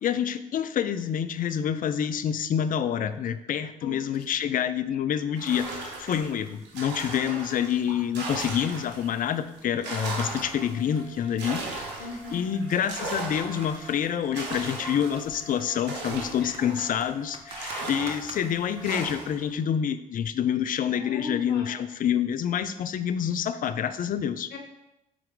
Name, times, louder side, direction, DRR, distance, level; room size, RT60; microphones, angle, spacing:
voice 1, 0.0-11.9 12.3-24.5, left 9 dB, 45° left, 12 dB, 0.5 m, -27 dB
sound 1, 5.4-9.2 9.6-17.1 17.5-19.5, right 3 dB, 70° right, 1.4 m, -37 dB
sound 2, 10.1-19.1, left 1 dB, 80° left, 0.9 m, -51 dB
voice 2, 12.0-12.5 16.4-16.8 20.9-21.8 24.5-24.6, left 4 dB, 65° left, 2 dB, 1.2 m, -38 dB
sound 3, 12.7-18.9, right 3 dB, 35° right, 0.9 m, -47 dB
6.2 x 4.4 x 3.7 m, 0.88 s
hypercardioid pair, 55°, 19 cm